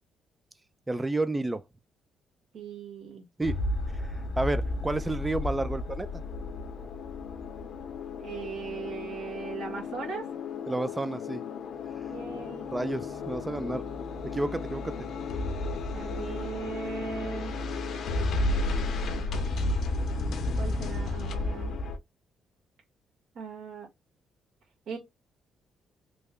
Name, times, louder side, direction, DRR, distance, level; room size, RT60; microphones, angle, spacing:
voice 1, 0.9-1.6 3.4-3.6 4.4-6.1 10.7-11.4 12.7-13.8 14.3-15.1, right 2 dB, 15° right, 0.4 m, -30 dB
voice 2, 2.5-3.2 8.2-10.2 12.1-12.7 15.9-17.5 18.4-19.8 20.6-21.8 23.3-23.9 24.9-25.0, right 6 dB, 75° right, 1.5 m, -39 dB
sound 1, 3.4-22.0, left 2 dB, 65° left, 0.8 m, -33 dB
3.2 x 2.2 x 3.5 m
cardioid pair, 90°, 0 cm